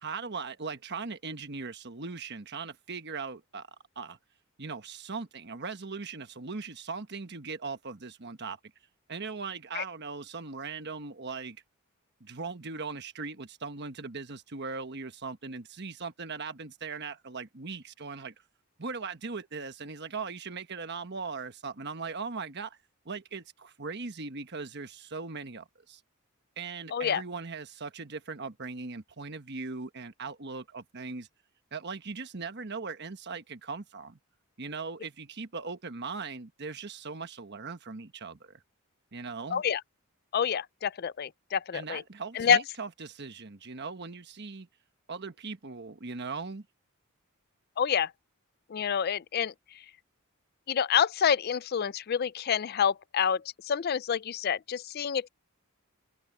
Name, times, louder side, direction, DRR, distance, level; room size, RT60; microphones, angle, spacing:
voice 1, 0.0-3.7 3.9-4.2 4.6-8.7 9.1-11.6 12.2-18.3 18.8-22.8 23.0-26.0 26.6-31.3 31.7-34.2 34.6-38.6 39.1-39.6 41.7-44.7 45.1-46.7, right 4 dB, 50° right, 1.2 m, -39 dB
voice 2, 26.9-27.2 39.5-39.8 40.3-42.0 42.4-42.6 47.8-48.1 48.7-49.5 50.7-55.3, left 7 dB, 45° left, 0.4 m, -27 dB
open air
head